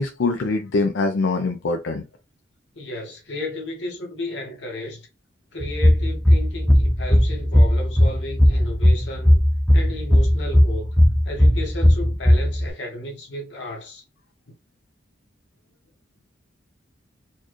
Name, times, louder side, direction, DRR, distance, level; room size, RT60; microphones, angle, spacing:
voice 1, 0.0-2.0, left 3 dB, 85° left, 0.5 m, -23 dB
voice 2, 2.7-5.1 5.5-9.4 9.7-11.0 11.2-14.0, left 1 dB, 70° left, 1.3 m, -33 dB
sound 1, 5.6-12.7, equal, ahead, 0.4 m, -17 dB
4.3 x 2.4 x 3.0 m
head